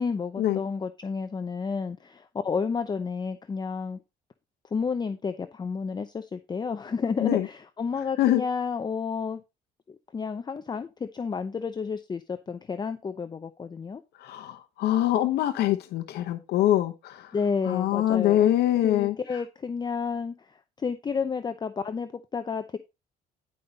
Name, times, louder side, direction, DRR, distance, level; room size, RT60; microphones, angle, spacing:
voice 1, 0.0-4.0 4.7-9.4 9.9-14.0 17.3-18.5 18.8-22.8, left 5 dB, 25° left, 0.7 m, -31 dB
voice 2, 14.2-17.3 17.6-19.1, left 13 dB, 75° left, 0.9 m, -24 dB
10.5 x 5.4 x 4.0 m
cardioid pair, 110°, 17 cm